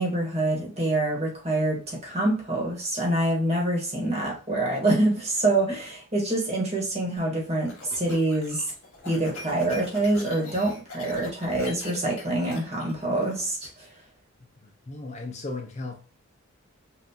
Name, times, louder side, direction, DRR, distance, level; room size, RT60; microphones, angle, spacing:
voice 1, 0.0-8.7 9.0-13.9, right 2 dB, 30° right, 1.3 m, -26 dB
sound 1, 7.2-13.7, left 2 dB, 80° left, 1.7 m, -42 dB
voice 2, 14.6-16.0, left 3 dB, 30° left, 0.4 m, -36 dB
5.6 x 2.5 x 2.8 m
head